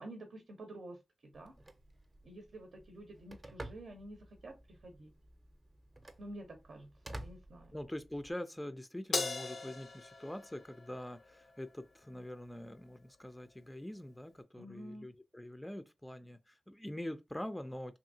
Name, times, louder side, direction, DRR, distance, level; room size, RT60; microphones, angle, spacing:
voice 1, 0.0-1.5 2.2-5.1 6.2-7.7 14.6-15.1, right 1 dB, 75° right, 0.7 m, -50 dB
Telephone, 1.3-8.3, right 1 dB, 30° right, 0.6 m, -52 dB
voice 2, 7.7-18.0, left 1 dB, 10° left, 0.3 m, -44 dB
Crash cymbal, 9.1-11.7, left 4 dB, 75° left, 0.5 m, -39 dB
2.8 x 2.7 x 2.6 m
cardioid pair, 60°, 0 cm